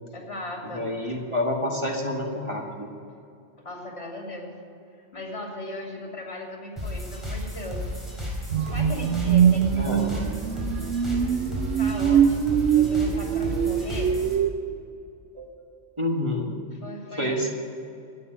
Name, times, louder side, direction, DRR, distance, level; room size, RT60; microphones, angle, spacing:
voice 1, 0.1-0.9 3.6-4.5 5.1-7.8 8.6-10.2 11.7-14.1 16.8-17.5, left 1 dB, 65° left, 0 dB, 2.9 m, -37 dB
voice 2, 0.6-2.9 9.8-10.0 15.3-15.5 16.0-16.5 17.2-17.5, left 1 dB, 25° right, 0 dB, 1.6 m, -28 dB
sound 1, 6.8-14.3, left 1 dB, ahead, 4.5 m, -33 dB
sound 2, 8.5-14.5, right 8 dB, 90° right, 1.0 m, -23 dB
13.0 x 8.7 x 9.2 m, 2.5 s
omnidirectional pair, 1.2 m